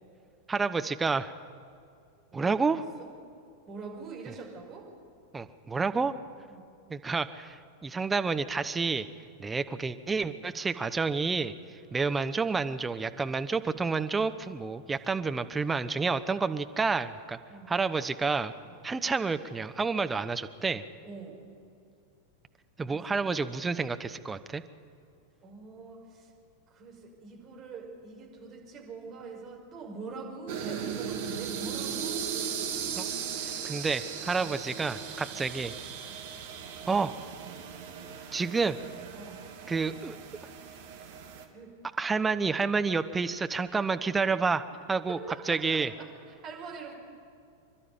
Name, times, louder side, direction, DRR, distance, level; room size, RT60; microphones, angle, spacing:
voice 1, 0.5-1.3 2.3-2.8 5.3-6.1 6.9-9.1 9.4-11.5 11.9-17.4 17.7-18.5 18.8-20.8 22.8-24.6 33.0-33.1 33.4-35.7 36.9-37.1 38.3-38.8 39.7-40.2 42.0-44.6 44.9-45.2 45.5-45.9, right 4 dB, 15° right, 9 dB, 0.8 m, -29 dB
voice 2, 2.3-3.1 3.7-4.9 5.9-6.0 6.5-6.6 17.5-17.7 18.6-18.9 21.0-21.4 22.9-23.2 25.4-26.3 26.7-32.7 35.3-35.5 36.0-36.2 39.1-39.4 41.5-41.7 45.1-46.9, right 4 dB, 30° right, -1 dB, 5.9 m, -44 dB
sound 1, 30.5-41.4, right 7 dB, 55° right, 2.2 m, -37 dB
26.5 x 12.0 x 9.5 m, 2.4 s
figure-of-eight pair, 90°, 0 cm